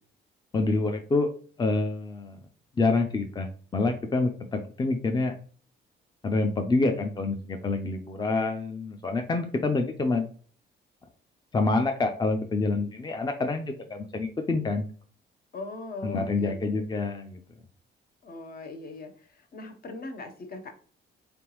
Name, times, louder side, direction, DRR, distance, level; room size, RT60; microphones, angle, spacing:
voice 1, 0.5-1.3 1.6-2.4 2.8-3.5 3.7-5.3 6.2-10.3 11.5-14.9 16.0-17.4, left 3 dB, 20° left, 5 dB, 0.6 m, -27 dB
voice 2, 15.5-16.8 18.2-20.7, left 2 dB, 50° left, 6 dB, 0.9 m, -40 dB
3.8 x 3.5 x 3.0 m, 0.42 s
cardioid pair, 90°, 20 cm